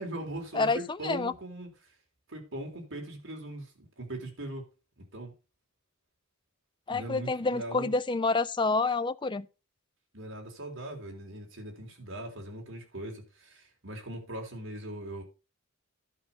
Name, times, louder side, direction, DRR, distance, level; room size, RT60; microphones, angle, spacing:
voice 1, 0.0-1.7 2.3-4.7 5.0-5.3 6.9-7.9 10.1-15.2, right 1 dB, 60° right, 3.7 m, -40 dB
voice 2, 0.5-1.3 6.9-9.5, left 3 dB, 20° left, 0.5 m, -28 dB
11.5 x 5.6 x 5.5 m
head